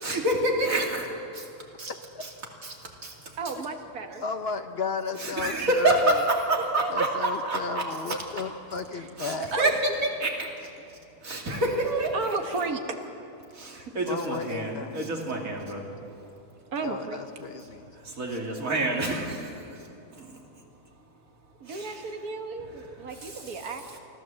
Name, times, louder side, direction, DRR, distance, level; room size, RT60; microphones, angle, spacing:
voice 1, 0.0-1.5 1.8-1.9 2.2-2.3 2.6-2.8 3.0-3.1 5.2-8.2 9.2-9.7 10.2-10.5 11.2-12.1 13.5-15.8 18.0-19.6 20.2-20.3 21.7-22.1 23.1-23.6, right 1 dB, 65° right, 1 dB, 2.9 m, -28 dB
voice 2, 3.4-4.2 6.6-6.9 8.9-9.1 9.5-9.7 11.8-13.0 16.7-17.2 21.6-24.0, right 4 dB, 85° right, 5 dB, 1.9 m, -33 dB
voice 3, 4.2-6.2 6.9-9.5 14.0-15.0 16.8-18.0, left 4 dB, 50° left, 8 dB, 0.9 m, -34 dB
24.5 x 15.0 x 7.6 m, 2.7 s
omnidirectional pair, 1.5 m